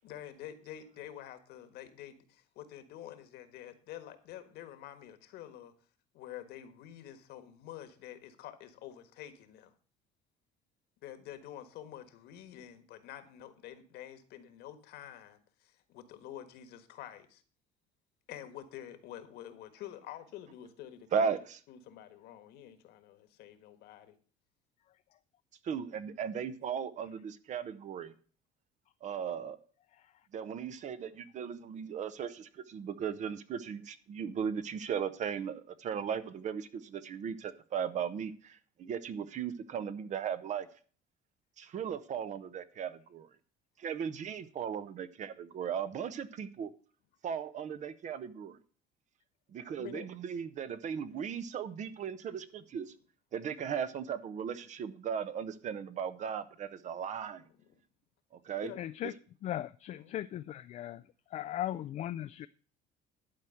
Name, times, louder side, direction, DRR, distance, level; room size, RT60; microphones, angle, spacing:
voice 1, 0.0-5.7 6.1-9.7 11.0-17.4 18.3-21.3 21.7-24.1 49.8-50.1 57.7-57.8 58.6-58.8 60.0-60.2, left 11 dB, 70° left, 1.5 m, -48 dB
voice 2, 21.1-21.6 25.6-28.1 29.0-29.6 30.3-40.7 41.6-43.3 43.8-46.7 47.2-48.6 49.5-52.9 53.3-57.4 58.3-58.7, right 7 dB, 45° right, 0.9 m, -37 dB
voice 3, 58.8-59.1 59.4-61.0 61.3-62.5, left 12 dB, 45° left, 0.4 m, -38 dB
11.5 x 4.5 x 7.7 m
cardioid pair, 125°, 17 cm